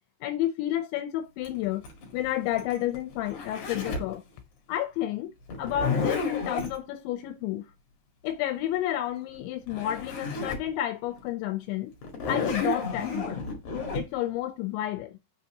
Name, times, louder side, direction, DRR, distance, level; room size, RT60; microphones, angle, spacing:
voice 1, 0.2-1.8 2.1-4.2 4.7-5.3 5.6-7.6 8.2-11.9 12.3-13.5 13.9-15.2, left 13 dB, 80° left, 2.9 m, -30 dB
Zipper (clothing), 1.4-4.1 5.5-6.8 9.3-9.4 9.7-10.7 11.2-11.3 12.0-14.0, left 3 dB, 50° left, 2.9 m, -31 dB
6.9 x 4.1 x 5.8 m
omnidirectional pair, 5.4 m